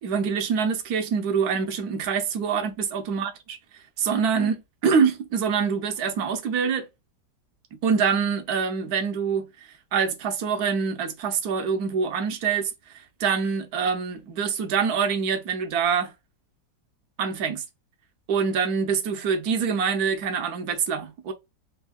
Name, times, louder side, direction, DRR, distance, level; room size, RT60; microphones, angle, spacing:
voice 1, 0.0-3.3 4.0-6.9 7.7-16.1 17.2-17.6 18.3-21.3, right 6 dB, 65° right, 1.2 m, -25 dB
4.5 x 2.7 x 2.2 m
omnidirectional pair, 2.0 m